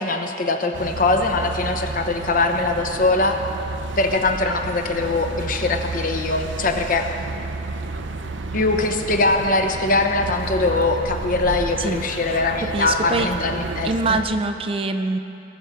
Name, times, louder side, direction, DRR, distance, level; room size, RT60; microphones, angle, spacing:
voice 1, 0.0-3.4 4.0-7.1 8.5-14.2, left 3 dB, 45° left, 5 dB, 0.9 m, -22 dB
sound 1, 0.7-14.2, right 3 dB, 85° right, 0.7 m, -31 dB
voice 2, 11.8-12.4 12.7-13.3 13.8-15.2, right 3 dB, 30° right, 8 dB, 0.4 m, -24 dB
19.5 x 6.8 x 5.0 m, 2.7 s
head